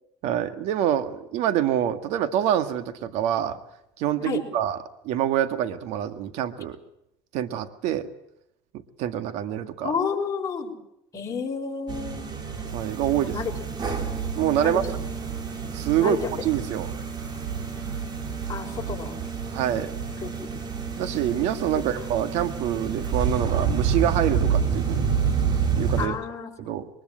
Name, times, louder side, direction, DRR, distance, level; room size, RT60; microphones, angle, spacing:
voice 1, 0.2-3.6 4.0-4.8 5.0-6.8 7.3-8.1 9.0-9.9 12.7-13.3 14.4-14.8 15.7-16.2 16.4-16.9 19.5-19.9 21.0-25.1 25.8-26.2 26.6-26.9, right 11 dB, 75° right, 10 dB, 1.9 m, -26 dB
voice 2, 9.8-10.7 11.1-12.2 13.2-13.5 14.6-14.9 16.0-16.2 18.5-19.2 20.2-20.3 26.0-26.7, left 6 dB, 30° left, 0 dB, 6.3 m, -30 dB
sound 1, 11.9-26.1, right 6 dB, 40° right, 4.2 m, -28 dB
22.5 x 21.0 x 7.9 m, 0.80 s
supercardioid pair, 105°, 11 cm